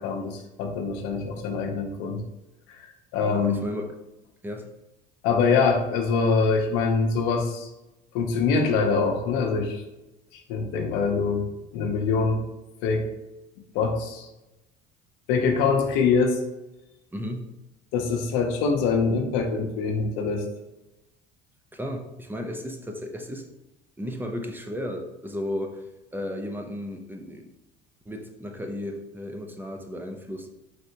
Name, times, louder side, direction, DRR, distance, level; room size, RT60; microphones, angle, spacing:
voice 1, 0.0-2.2 2.7-3.6 5.2-7.7 8.1-9.8 10.3-12.4 12.8-13.1 13.7-14.3 15.3-16.4 17.9-20.4, left 5 dB, 90° left, 4 dB, 0.7 m, -24 dB
voice 2, 3.2-4.0 4.4-4.7 17.1-17.4 21.7-23.5 24.0-25.8 26.1-27.5 28.1-30.5, left 1 dB, 10° right, 3 dB, 0.5 m, -34 dB
3.9 x 3.3 x 2.8 m, 0.96 s
cardioid pair, 105°, 19 cm